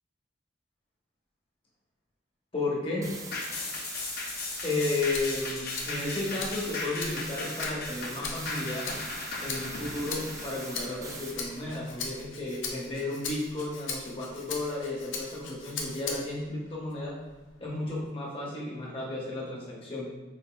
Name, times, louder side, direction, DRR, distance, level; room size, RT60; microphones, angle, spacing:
voice 1, 2.5-3.0 4.6-8.9 9.4-17.2 17.6-20.1, left 2 dB, 30° left, -4 dB, 1.1 m, -33 dB
sound 1, 3.0-11.3, right 3 dB, 15° right, 0.4 m, -43 dB
sound 2, 3.3-12.0 12.4-12.5, left 3 dB, 55° left, 0.6 m, -37 dB
Rattle (instrument), 5.0-16.5 16.9-18.1, left 4 dB, 90° left, 0.7 m, -40 dB
6.0 x 2.7 x 2.4 m, 1.3 s
head